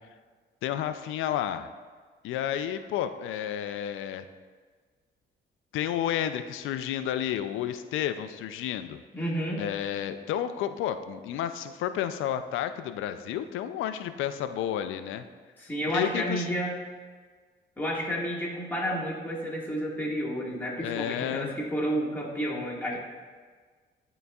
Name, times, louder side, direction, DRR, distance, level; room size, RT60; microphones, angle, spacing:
voice 1, 0.6-1.7 2.2-4.2 5.7-9.0 9.6-15.2 15.9-16.5 20.8-21.5, left 10 dB, 85° left, 10 dB, 0.4 m, -31 dB
voice 2, 9.1-9.6 15.6-16.8 17.8-23.0, equal, 10° left, -5 dB, 1.7 m, -31 dB
11.0 x 3.9 x 2.3 m, 1.5 s
cardioid pair, 90°, 20 cm